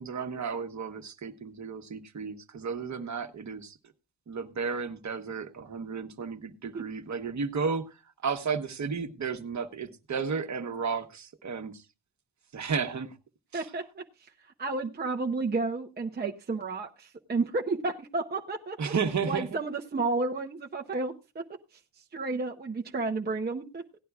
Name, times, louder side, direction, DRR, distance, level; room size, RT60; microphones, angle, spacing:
voice 1, 0.0-3.7 4.3-7.8 8.2-11.8 12.5-13.1 13.5-13.6 18.8-19.5, right 5 dB, 45° right, 6 dB, 1.2 m, -33 dB
voice 2, 13.5-14.0 14.6-18.9 19.2-21.4 21.7-23.8, right 3 dB, 25° right, 2 dB, 0.7 m, -32 dB
17.5 x 11.0 x 2.3 m, 0.27 s
wide cardioid pair, 145°, 40 cm